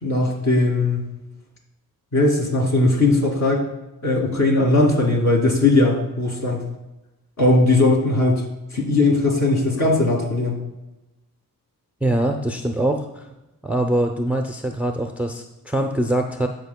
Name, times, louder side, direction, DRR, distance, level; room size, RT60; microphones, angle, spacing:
voice 1, 0.0-1.0 2.1-3.6 4.0-6.6 7.4-8.5 8.7-10.6, left 2 dB, 50° left, -2 dB, 2.7 m, -18 dB
voice 2, 12.0-13.3 13.6-16.5, right 1 dB, 5° right, 4 dB, 0.6 m, -23 dB
15.0 x 5.1 x 2.3 m, 1.0 s
cardioid pair, 75°, 35 cm